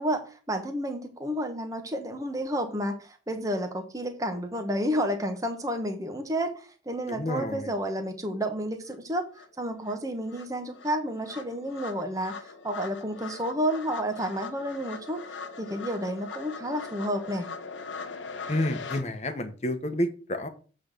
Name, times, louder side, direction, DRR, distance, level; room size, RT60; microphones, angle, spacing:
voice 1, 0.0-9.3 9.6-15.2 15.6-17.5, equal, 20° right, 5 dB, 1.2 m, -31 dB
voice 2, 7.1-7.7 18.5-20.5, left 1 dB, 35° left, 9 dB, 1.1 m, -30 dB
sound 1, 8.9-9.0 9.4-19.0, left 5 dB, 80° left, 1.0 m, -41 dB
8.0 x 3.9 x 6.7 m, 0.38 s
head